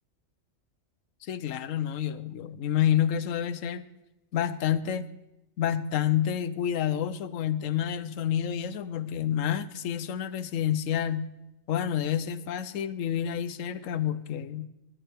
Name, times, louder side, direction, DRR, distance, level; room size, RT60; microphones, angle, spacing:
voice 1, 1.2-3.9 4.3-5.1 5.6-11.3 11.7-14.7, left 10 dB, 75° left, 14 dB, 1.1 m, -28 dB
20.0 x 13.5 x 3.5 m, 0.92 s
omnidirectional pair, 1.4 m